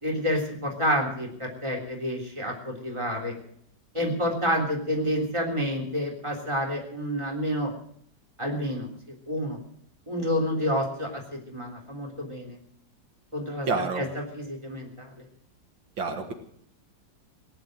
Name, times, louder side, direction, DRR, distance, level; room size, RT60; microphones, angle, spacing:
voice 1, 0.0-3.3 3.9-7.7 8.4-8.9 9.3-9.6 10.1-12.6 13.3-14.1 14.3-15.3, equal, 15° right, 0 dB, 3.4 m, -29 dB
voice 2, 13.7-14.0 16.0-16.3, right 4 dB, 80° right, 6 dB, 2.3 m, -28 dB
18.5 x 9.8 x 7.9 m, 0.66 s
omnidirectional pair, 2.0 m